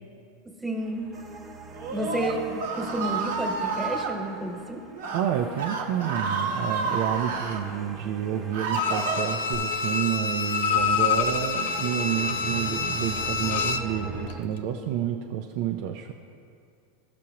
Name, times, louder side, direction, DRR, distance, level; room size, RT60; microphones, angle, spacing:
voice 1, 0.6-1.1 1.9-4.8, right 1 dB, 10° right, 1 dB, 1.4 m, -31 dB
sound 1, 0.8-14.5, right 3 dB, 30° right, 0.9 m, -42 dB
Screaming, 1.7-4.1 4.9-5.2 5.5-7.6 8.2-9.5, right 5 dB, 85° right, 1.1 m, -30 dB
voice 2, 5.1-16.1, right 10 dB, 60° right, 3 dB, 0.5 m, -29 dB
Bowed string instrument, 8.7-14.0 14.3-14.4, left 5 dB, 75° left, 0.5 m, -27 dB
15.0 x 6.1 x 2.9 m, 2.4 s
hypercardioid pair, 100°, 0 cm